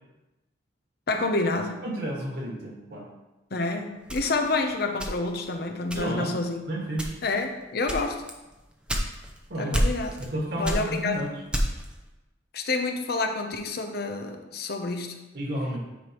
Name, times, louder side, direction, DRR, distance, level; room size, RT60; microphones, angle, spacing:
voice 1, 1.1-1.8 3.5-6.6 7.2-8.2 9.6-10.2 10.6-11.2 12.5-15.2, left 3 dB, 55° left, 5 dB, 0.7 m, -28 dB
voice 2, 1.8-3.1 5.9-6.3 6.7-7.1 9.5-9.7 10.2-11.3 15.3-15.8, right 1 dB, 60° right, -2 dB, 1.8 m, -31 dB
sound 1, 4.1-5.5 5.9-6.4 6.9-7.4 7.9-9.4 9.7-10.3 10.6-11.9, equal, 5° right, 0.7 m, -28 dB
9.1 x 5.0 x 3.0 m, 1.0 s
head